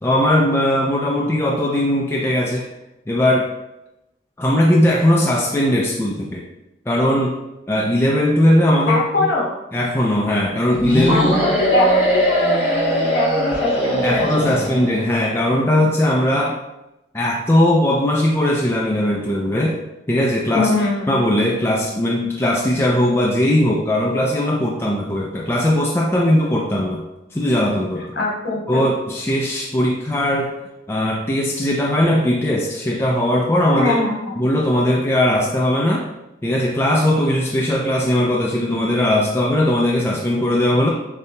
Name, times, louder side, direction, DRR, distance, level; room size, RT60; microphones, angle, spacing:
voice 1, 0.0-2.7 3.1-3.5 4.4-6.4 6.9-7.3 7.7-9.3 9.7-11.3 14.0-16.5 17.1-19.8 20.1-20.7 21.1-27.0 27.3-28.1 28.7-30.5 30.9-34.0 34.4-36.1 36.4-40.9, left 1 dB, 15° left, -3 dB, 0.4 m, -19 dB
voice 2, 8.9-9.5 11.1-14.7 20.5-21.1 28.1-28.8 33.7-34.3, left 2 dB, 60° left, -4 dB, 1.3 m, -22 dB
sound 1, 10.8-15.0, right 1 dB, 10° right, 0.9 m, -20 dB
6.7 x 2.8 x 2.2 m, 0.92 s
head